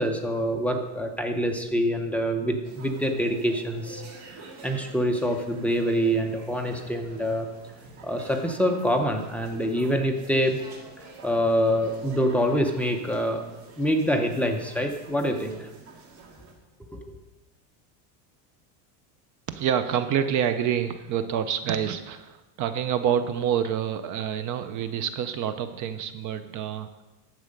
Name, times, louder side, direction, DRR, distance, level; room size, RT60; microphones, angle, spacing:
voice 1, 0.0-4.0 4.6-7.5 8.0-10.6 11.2-13.4 13.8-15.7 16.9-17.2, equal, 5° left, 4 dB, 0.7 m, -25 dB
sound 1, 2.6-16.5, right 3 dB, 55° right, 2.5 m, -47 dB
voice 2, 19.5-27.0, right 9 dB, 40° right, 11 dB, 0.6 m, -27 dB
11.0 x 7.6 x 5.2 m, 1.0 s
supercardioid pair, 145°, 47 cm